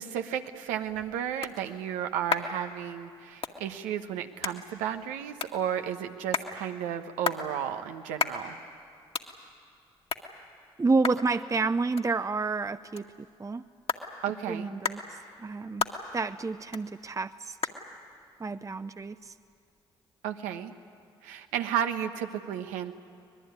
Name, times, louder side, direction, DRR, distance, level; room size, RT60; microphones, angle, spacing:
voice 1, 0.0-8.6 14.2-14.7 20.2-20.7 21.2-22.9, right 9 dB, 80° right, 7 dB, 1.2 m, -33 dB
sound 1, 0.5-19.8, left 4 dB, 50° left, 2.1 m, -38 dB
voice 2, 10.8-13.0 13.4-13.6 14.5-15.0 15.4-15.9 16.1-17.6 18.4-19.4, right 3 dB, 25° right, 11 dB, 0.7 m, -29 dB
24.5 x 20.5 x 9.7 m, 2.5 s
hypercardioid pair, 45°, 13 cm